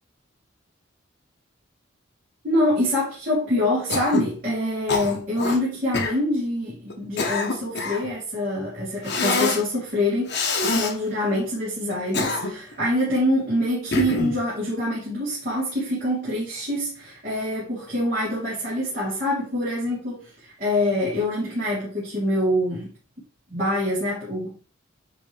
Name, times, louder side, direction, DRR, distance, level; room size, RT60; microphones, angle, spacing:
voice 1, 2.4-22.9 23.5-24.6, left 1 dB, 45° right, 3.6 m, -25 dB
Cough, 3.9-4.3 4.9-5.6 5.9-6.2 6.9-8.1 9.0-9.6 10.3-10.9 11.9-12.7 13.9-14.4, left 3 dB, 55° left, 1.3 m, -25 dB
10.5 x 3.7 x 3.4 m
head